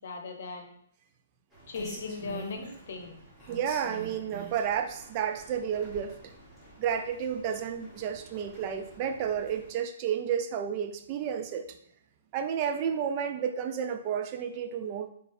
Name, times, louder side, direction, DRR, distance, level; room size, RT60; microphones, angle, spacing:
voice 1, 0.0-0.7 1.7-3.2, left 4 dB, 65° left, 4 dB, 0.8 m, -38 dB
Rain, 1.5-9.7, right 1 dB, 5° right, 1.4 m, -46 dB
voice 2, 3.5-6.2 6.8-11.8 12.3-15.1, right 8 dB, 35° right, 7 dB, 0.4 m, -31 dB
4.4 x 3.3 x 2.6 m, 0.69 s
hypercardioid pair, 135°, 0 cm